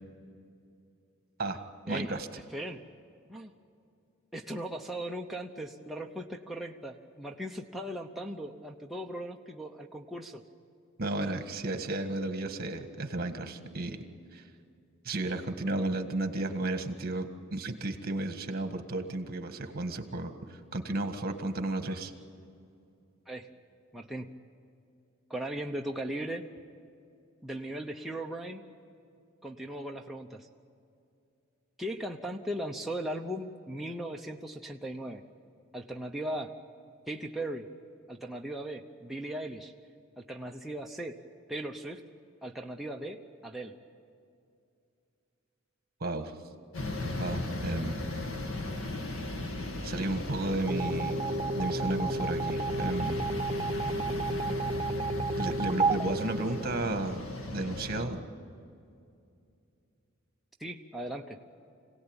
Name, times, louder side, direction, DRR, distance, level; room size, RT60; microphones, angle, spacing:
voice 1, 1.9-2.3 11.0-14.0 14.3-14.5 15.0-22.1 46.0-46.3 47.2-48.0 49.8-51.2 51.5-53.2 55.3-57.2 57.5-58.2, right 2 dB, 50° right, 7 dB, 1.7 m, -33 dB
voice 2, 4.3-10.4 23.3-23.5 23.9-24.3 25.3-26.5 27.4-28.6 29.4-30.5 31.8-35.2 35.7-36.5 37.1-37.7 38.1-39.7 40.2-41.2 41.5-42.0 42.4-43.2 43.4-43.7 60.6-61.4, right 1 dB, ahead, 0 dB, 0.8 m, -38 dB
sound 1, 46.7-58.0, left 2 dB, 70° left, 2.0 m, -37 dB
sound 2, 50.7-57.2, right 3 dB, 25° right, 0.5 m, -32 dB
26.0 x 17.5 x 9.0 m, 2.5 s
head